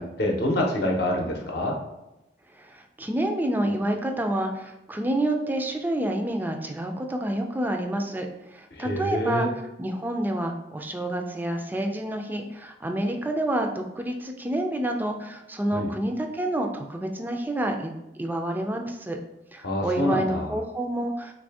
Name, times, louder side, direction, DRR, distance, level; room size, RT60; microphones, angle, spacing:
voice 1, 0.0-1.7 8.7-9.5 15.7-15.9 19.6-20.5, left 1 dB, 65° left, 0 dB, 0.7 m, -26 dB
voice 2, 2.6-8.3 8.5-17.9 18.2-19.2 19.5-21.3, right 1 dB, 10° right, 4 dB, 0.3 m, -28 dB
3.3 x 2.6 x 3.4 m, 0.92 s
head